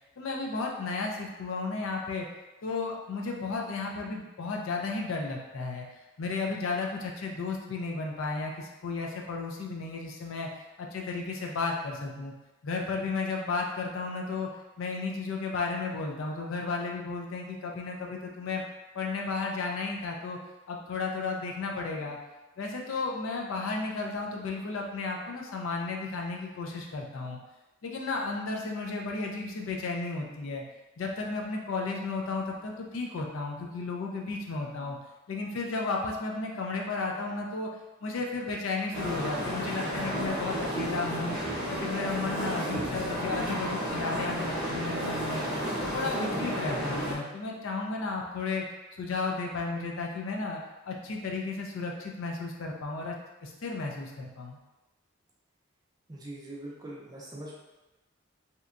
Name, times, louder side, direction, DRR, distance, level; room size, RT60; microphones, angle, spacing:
voice 1, 0.2-2.3 2.6-5.9 6.2-10.5 10.8-12.3 12.6-14.5 14.8-18.6 18.9-20.4 20.7-22.2 22.6-27.4 27.8-30.6 31.0-35.0 35.3-37.7 38.0-41.4 41.7-45.4 45.8-48.6 49.0-50.6 50.9-53.2 53.4-54.6, left 3 dB, 70° left, 0 dB, 0.4 m, -33 dB
sound 1, 38.9-47.1, equal, ahead, 0.9 m, -32 dB
voice 2, 56.1-57.5, right 1 dB, 20° right, -4 dB, 0.5 m, -42 dB
2.8 x 2.2 x 2.5 m, 1.1 s
head